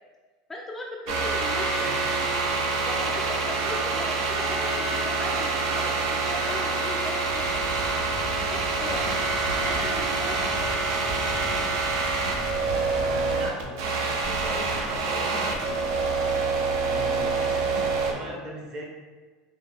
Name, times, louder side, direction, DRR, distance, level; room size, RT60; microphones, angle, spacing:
voice 1, 0.5-1.7 2.9-7.6 8.3-9.0 9.5-11.0, left 1 dB, 10° left, -1 dB, 0.3 m, -38 dB
sound 1, 1.1-18.1, right 3 dB, 75° right, 0.6 m, -26 dB
voice 2, 1.8-2.1 12.9-15.8 16.8-18.9, right 1 dB, 35° right, 0 dB, 0.7 m, -38 dB
sound 2, 7.3-13.3, equal, 85° left, 0.9 m, -39 dB
4.4 x 2.2 x 3.5 m, 1.4 s
cardioid pair, 165°, 2 cm